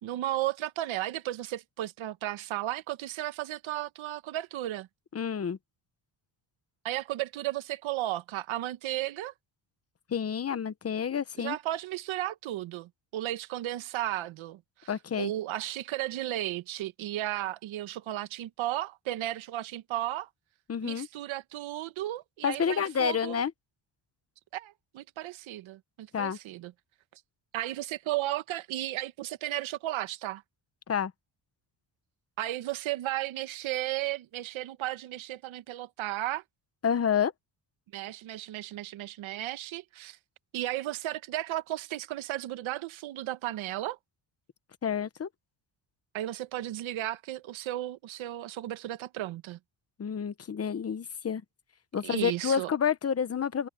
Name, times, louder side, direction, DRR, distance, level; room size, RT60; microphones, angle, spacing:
voice 1, 0.0-4.9 6.8-9.3 11.4-20.3 20.8-23.4 24.5-26.7 27.5-30.4 32.4-36.4 37.9-40.2 40.5-44.0 46.1-49.6 52.0-52.7, right 14 dB, 85° right, 1.2 m, -34 dB
voice 2, 5.1-5.6 10.1-11.6 14.9-15.3 20.7-21.1 22.4-23.5 26.1-26.4 30.9-31.1 36.8-37.3 44.8-45.3 50.0-51.4 51.9-53.7, left 7 dB, 30° left, 1.0 m, -29 dB
cardioid pair, 130°, 46 cm